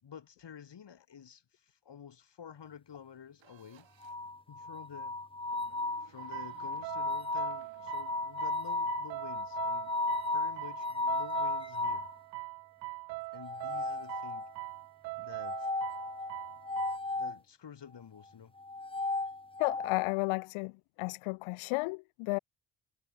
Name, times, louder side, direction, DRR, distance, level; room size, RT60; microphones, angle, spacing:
voice 1, 0.0-3.9 4.5-5.2 6.0-9.9 10.3-12.1 13.3-14.5 15.2-15.7 17.1-18.5, left 8 dB, 55° left, 7.1 m, -50 dB
sound 1, 3.4-4.3 5.4-8.5, right 11 dB, 60° right, 3.0 m, -63 dB
sound 2, 4.0-12.1 13.4-14.7 15.4-17.4 18.6-19.9, left 2 dB, 10° left, 1.0 m, -35 dB
sound 3, 6.2-17.0, right 25 dB, 85° right, 1.4 m, -43 dB
voice 2, 19.6-20.7 21.0-22.4, left 27 dB, 75° left, 0.7 m, -32 dB
hypercardioid pair, 40°, 49 cm